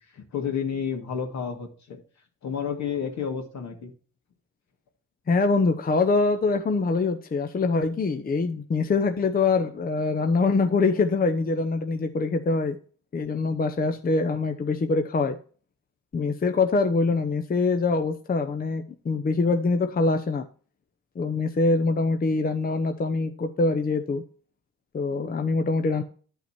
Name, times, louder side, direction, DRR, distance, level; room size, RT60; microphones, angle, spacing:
voice 1, 0.1-2.0 2.4-3.9, left 7 dB, 65° left, 3 dB, 2.4 m, -30 dB
voice 2, 5.3-12.8 13.1-15.4 16.1-20.5 21.2-24.2 24.9-26.0, left 3 dB, 30° left, 6 dB, 0.8 m, -24 dB
10.5 x 5.7 x 4.4 m, 0.42 s
cardioid pair, 90°, 30 cm